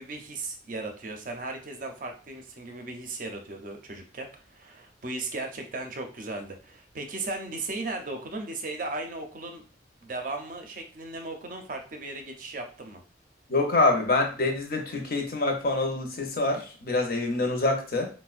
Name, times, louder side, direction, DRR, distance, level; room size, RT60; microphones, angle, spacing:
voice 1, 0.0-9.6 10.0-13.0, right 2 dB, 45° right, 4 dB, 0.5 m, -36 dB
voice 2, 13.5-18.1, left 2 dB, 50° left, 3 dB, 0.6 m, -26 dB
4.1 x 2.1 x 2.4 m, 0.38 s
head